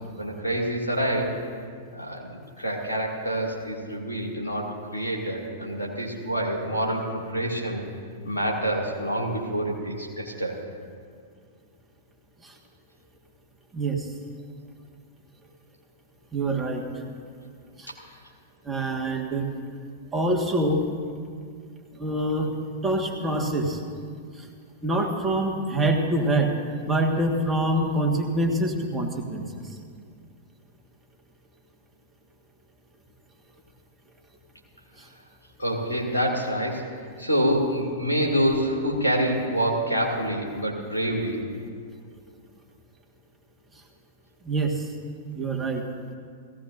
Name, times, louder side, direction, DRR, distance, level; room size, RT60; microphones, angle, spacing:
voice 1, 0.2-1.3 1.9-7.8 8.2-10.6 35.6-36.8 37.2-41.4, equal, 90° left, -2 dB, 2.3 m, -27 dB
voice 2, 13.7-14.1 16.3-16.8 17.8-17.9 18.6-19.5 20.1-20.8 22.0-22.5 22.8-23.8 24.4-24.5 24.8-26.5 26.8-29.7 35.0-35.1 44.4-44.9 45.3-45.8, right 1 dB, 15° right, 1 dB, 1.6 m, -25 dB
18.0 x 16.0 x 2.6 m, 2.1 s
figure-of-eight pair, 100°, 0 cm